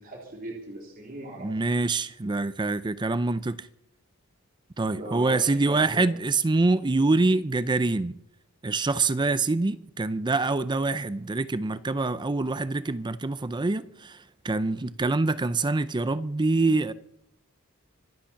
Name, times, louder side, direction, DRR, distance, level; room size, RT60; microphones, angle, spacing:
voice 1, 0.0-1.5 4.9-6.0, right 1 dB, 40° right, 3.7 m, -39 dB
voice 2, 1.4-3.7 4.8-8.1 8.6-14.2 14.4-16.9, right 3 dB, 20° right, 0.5 m, -25 dB
25.5 x 8.8 x 5.8 m
head